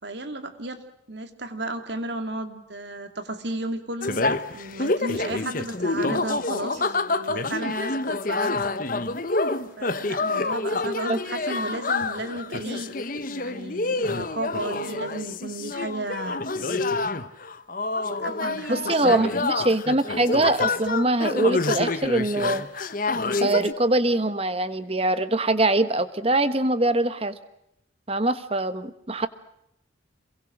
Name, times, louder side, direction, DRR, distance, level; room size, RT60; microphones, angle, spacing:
voice 1, 0.0-0.8 1.1-8.6 9.8-13.0 13.3-16.9 18.0-19.4, right 2 dB, 60° right, 8 dB, 2.5 m, -34 dB
sound 1, 4.0-23.7, left 3 dB, 45° left, 1.0 m, -27 dB
voice 2, 18.7-22.6 23.4-27.4 28.1-29.3, right 2 dB, 30° right, 12 dB, 1.3 m, -23 dB
27.5 x 22.5 x 6.3 m, 0.78 s
head